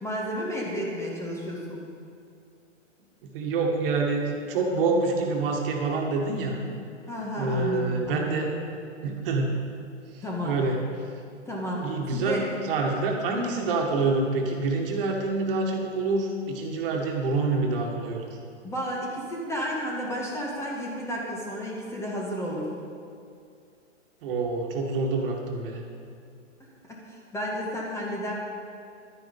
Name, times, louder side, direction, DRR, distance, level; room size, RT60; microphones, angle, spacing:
voice 1, 0.0-1.8 7.1-8.5 10.2-10.6 11.5-12.5 18.6-22.7 26.9-28.3, equal, 5° left, -3 dB, 1.7 m, -32 dB
voice 2, 3.2-6.6 7.4-8.5 9.0-9.5 10.1-10.8 11.8-18.3 24.2-25.8, right 3 dB, 45° right, 1 dB, 1.9 m, -27 dB
11.5 x 9.6 x 5.4 m, 2.4 s
hypercardioid pair, 125°, 37 cm